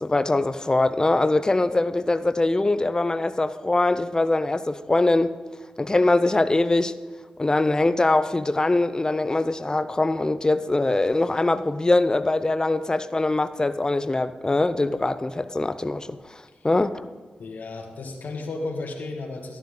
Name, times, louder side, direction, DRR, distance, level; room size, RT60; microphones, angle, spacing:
voice 1, 0.0-5.3 5.8-6.9 7.4-16.1 16.3-17.1, left 2 dB, 25° left, 0.6 m, -22 dB
voice 2, 17.4-19.6, left 3 dB, 75° left, 1.9 m, -34 dB
13.0 x 12.0 x 3.9 m
cardioid pair, 50°, 3 cm